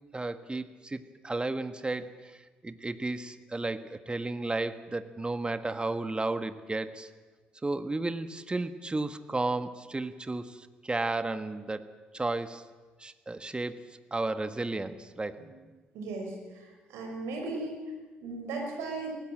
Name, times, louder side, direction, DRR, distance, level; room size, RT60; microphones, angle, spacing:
voice 1, 0.1-2.4 2.6-7.1 7.6-11.9 12.1-12.6 13.0-15.4, right 2 dB, 20° right, 11 dB, 1.5 m, -33 dB
voice 2, 15.9-17.7 18.2-19.1, right 3 dB, 70° right, 1 dB, 5.5 m, -37 dB
25.0 x 18.0 x 7.5 m, 1.3 s
figure-of-eight pair, 45°, 5 cm